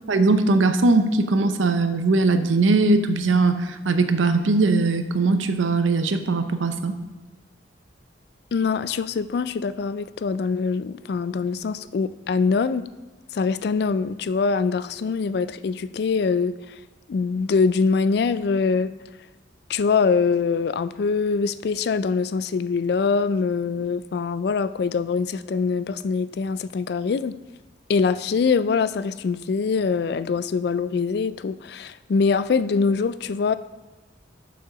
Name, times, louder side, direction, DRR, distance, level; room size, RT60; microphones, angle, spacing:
voice 1, 0.1-7.0, right 3 dB, 85° right, 9 dB, 0.7 m, -20 dB
voice 2, 8.5-12.8 13.3-16.6 17.1-18.9 19.7-27.4 27.9-33.5, left 5 dB, 55° left, 14 dB, 0.3 m, -23 dB
6.7 x 6.3 x 5.8 m, 1.1 s
head